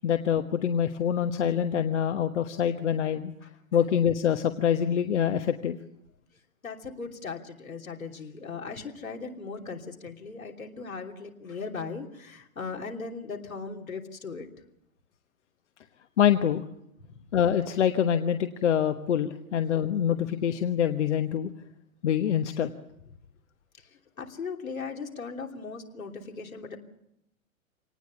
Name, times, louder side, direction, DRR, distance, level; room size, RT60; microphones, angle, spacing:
voice 1, 0.0-3.3 3.7-5.8 16.2-16.6 17.3-21.5 22.0-22.7, left 9 dB, 55° left, 8 dB, 1.2 m, -25 dB
voice 2, 3.4-3.8 6.6-14.5 17.0-17.2 23.8-26.8, left 4 dB, 75° left, 2 dB, 3.1 m, -38 dB
26.0 x 19.0 x 7.0 m, 0.79 s
figure-of-eight pair, 110°, 41 cm